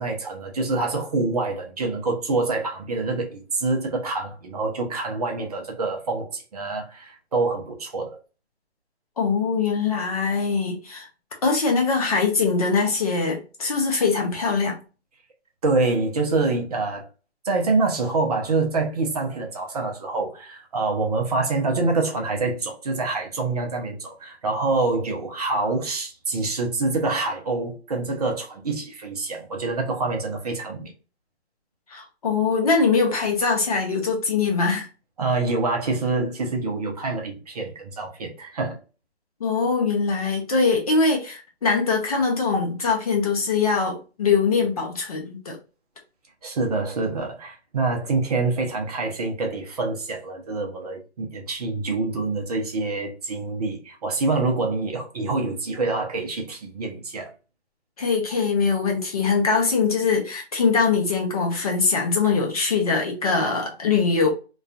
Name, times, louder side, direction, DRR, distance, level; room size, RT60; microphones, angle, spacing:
voice 1, 0.0-8.2 15.6-17.1 17.4-30.9 35.2-38.8 46.4-57.3, right 3 dB, 35° right, 0.5 m, -26 dB
voice 2, 9.2-11.1 11.4-14.8 31.9-34.9 39.4-45.6 58.0-64.3, left 4 dB, 35° left, 0.5 m, -22 dB
2.4 x 2.3 x 2.3 m
figure-of-eight pair, 145°, 34 cm